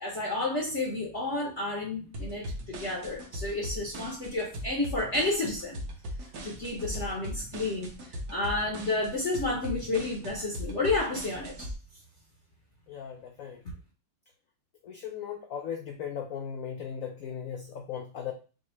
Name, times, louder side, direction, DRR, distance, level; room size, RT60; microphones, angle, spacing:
voice 1, 0.0-5.8 6.4-11.7, left 2 dB, 50° left, -1 dB, 1.0 m, -31 dB
sound 1, 2.1-11.7, equal, 60° right, 1.3 m, -39 dB
voice 2, 12.9-13.6 14.8-18.3, left 8 dB, 75° left, 3 dB, 0.7 m, -37 dB
6.2 x 2.3 x 3.1 m, 0.34 s
omnidirectional pair, 2.1 m